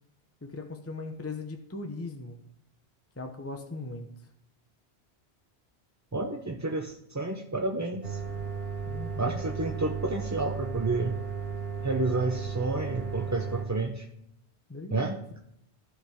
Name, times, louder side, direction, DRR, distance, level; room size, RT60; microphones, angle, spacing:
voice 1, 0.4-2.4 3.2-4.1 8.9-9.4 14.7-15.2, left 3 dB, 15° left, 5 dB, 0.8 m, -39 dB
voice 2, 6.1-8.2 9.2-11.2 11.8-14.1 14.9-15.2, right 2 dB, 20° right, 2 dB, 0.6 m, -30 dB
sound 1, 8.0-13.6, right 6 dB, 55° right, 2.0 m, -35 dB
14.5 x 5.0 x 3.6 m, 0.78 s
omnidirectional pair, 1.1 m